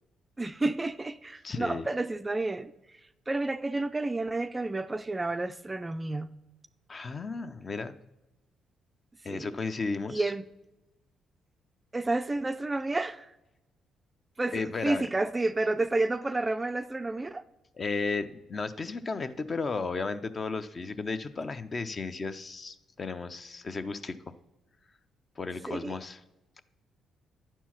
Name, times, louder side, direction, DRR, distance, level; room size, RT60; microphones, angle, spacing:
voice 1, 0.4-2.7 3.3-6.3 9.3-9.5 10.1-10.4 11.9-13.3 14.4-17.4 25.7-26.0, right 2 dB, 20° right, 0.3 m, -30 dB
voice 2, 1.4-1.9 6.9-8.0 9.2-10.3 14.5-15.1 17.7-24.3 25.4-26.2, left 4 dB, 35° left, 0.5 m, -34 dB
10.0 x 4.5 x 5.8 m
cardioid pair, 90°, 0 cm